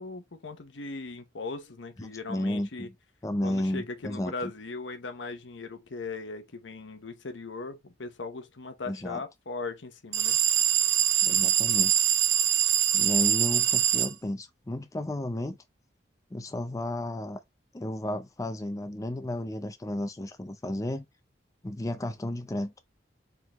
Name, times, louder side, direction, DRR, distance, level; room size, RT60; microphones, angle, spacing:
voice 1, 0.0-2.9 3.4-10.4, left 3 dB, 75° left, 0.9 m, -38 dB
voice 2, 2.0-2.9 3.2-4.5 8.9-9.2 11.2-11.9 12.9-15.6 16.3-17.4 17.7-21.0 21.6-22.7, left 1 dB, 20° left, 0.5 m, -33 dB
sound 1, 10.1-14.1, right 10 dB, 90° right, 0.7 m, -23 dB
4.6 x 3.8 x 2.9 m
head